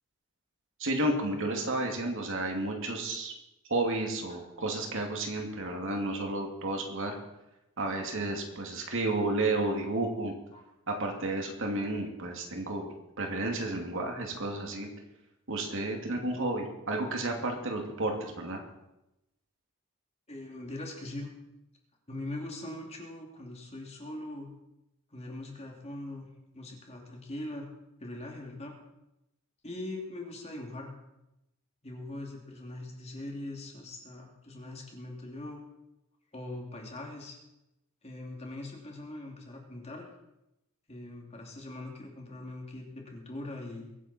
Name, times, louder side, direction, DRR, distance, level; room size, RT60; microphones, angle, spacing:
voice 1, 0.8-3.3 3.7-7.2 7.8-10.3 10.9-14.9 15.5-18.6, right 2 dB, 60° right, 2 dB, 2.6 m, -32 dB
voice 2, 20.3-21.3 22.1-24.5 25.1-26.3 26.5-27.7 28.0-28.7 29.6-31.0 31.8-35.7 36.3-37.4 38.0-40.1 40.9-43.9, left 1 dB, 30° left, 0 dB, 2.9 m, -41 dB
23.0 x 9.7 x 4.4 m, 0.91 s
head